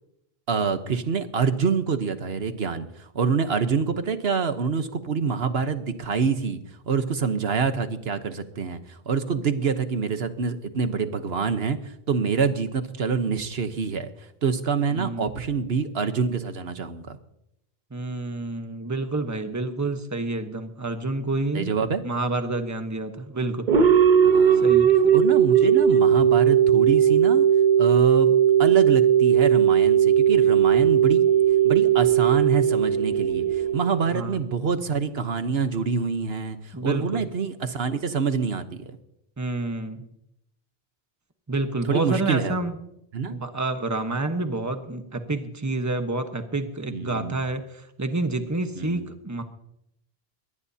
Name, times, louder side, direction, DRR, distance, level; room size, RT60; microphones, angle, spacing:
voice 1, 0.5-6.6 6.9-17.2 21.5-22.0 24.2-24.8 25.1-27.5 27.8-31.2 31.6-39.0 41.9-42.6 43.1-43.4 46.9-47.4 48.7-49.0, right 5 dB, 80° right, 9 dB, 1.3 m, -26 dB
voice 2, 14.9-15.3 17.9-21.7 22.0-23.6 24.5-25.0 34.0-34.4 36.7-37.2 39.4-40.1 41.5-42.7 43.3-49.4, right 2 dB, 15° right, 6 dB, 1.2 m, -29 dB
sound 1, 23.7-34.4, right 9 dB, 50° right, 1.0 m, -18 dB
22.0 x 18.5 x 2.8 m, 0.81 s
omnidirectional pair, 1.0 m